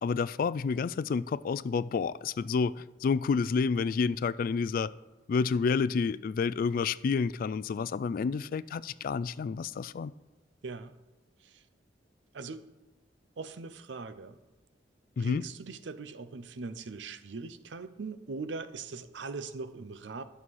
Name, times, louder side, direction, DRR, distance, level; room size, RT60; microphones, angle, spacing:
voice 1, 0.0-4.9 5.3-10.1 15.2-15.4, left 5 dB, 50° left, 0.3 m, -29 dB
voice 2, 10.6-10.9 11.4-11.6 12.3-12.6 13.4-14.4 15.2-20.2, right 4 dB, 85° right, 0.6 m, -41 dB
11.0 x 5.6 x 6.3 m
head